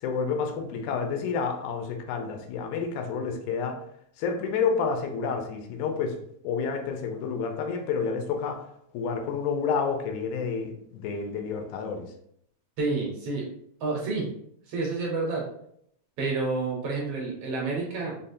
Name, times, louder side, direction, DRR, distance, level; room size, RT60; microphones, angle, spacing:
voice 1, 0.0-3.8 4.2-6.2 6.4-8.6 8.9-12.1, left 5 dB, 85° left, 4 dB, 2.0 m, -29 dB
voice 2, 12.8-13.5 13.8-14.3 14.7-15.5 16.2-18.2, right 3 dB, 70° right, -2 dB, 1.6 m, -29 dB
5.2 x 2.0 x 2.6 m, 0.69 s
omnidirectional pair, 3.3 m